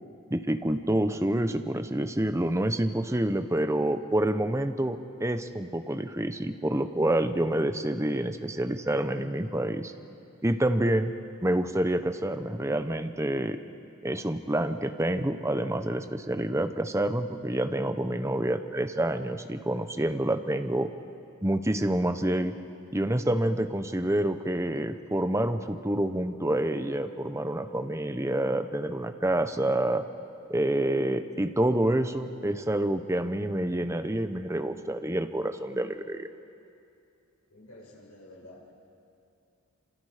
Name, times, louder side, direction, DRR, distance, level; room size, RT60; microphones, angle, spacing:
voice 1, 0.3-9.9 10.4-11.1 11.4-13.6 14.0-20.9 21.4-22.5 22.9-30.0 30.5-36.3, right 1 dB, 15° right, 8 dB, 0.8 m, -27 dB
voice 2, 37.5-38.6, left 1 dB, 75° left, -3 dB, 6.4 m, -50 dB
27.0 x 27.0 x 5.0 m, 2.6 s
head